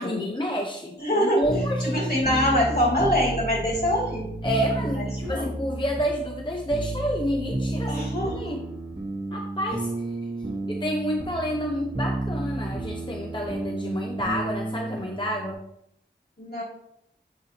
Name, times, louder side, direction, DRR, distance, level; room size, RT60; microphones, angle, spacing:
voice 1, 0.0-2.3 2.7-2.8 4.4-8.0 8.3-8.6 9.3-10.1 10.7-15.7, equal, 25° left, 1 dB, 0.6 m, -29 dB
voice 2, 1.0-1.4 1.8-4.3 5.2-5.5 7.9-8.6 16.4-16.6, equal, 55° left, -5 dB, 2.4 m, -24 dB
sound 1, 1.4-15.5, right 1 dB, 20° right, 1.1 m, -31 dB
7.3 x 4.5 x 2.8 m, 0.77 s
wide cardioid pair, 45°, 19 cm